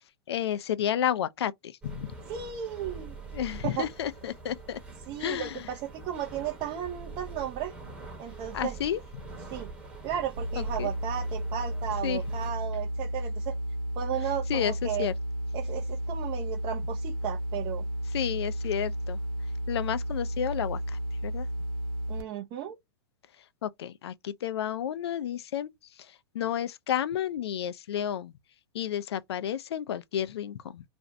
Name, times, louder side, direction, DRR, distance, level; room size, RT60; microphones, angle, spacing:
voice 1, 0.3-1.5 1.8-2.1 3.3-4.8 5.2-5.6 8.5-9.0 10.6-10.9 12.0-12.2 14.5-15.1 18.1-19.2 19.7-20.8 21.2-21.5 23.6-25.7 26.3-28.3 28.7-30.8, left 10 dB, 80° left, 0.4 m, -31 dB
sound 1, 1.8-12.5, right 4 dB, 10° right, 0.8 m, -44 dB
voice 2, 2.3-3.2 3.6-3.9 5.1-7.7 8.2-8.8 9.5-9.7 10.0-13.5 14.0-15.1 15.5-17.8 22.1-22.7, right 10 dB, 35° right, 0.4 m, -34 dB
sound 2, 10.4-22.2, equal, 55° right, 0.8 m, -33 dB
2.5 x 2.0 x 2.6 m
hypercardioid pair, 130°, 13 cm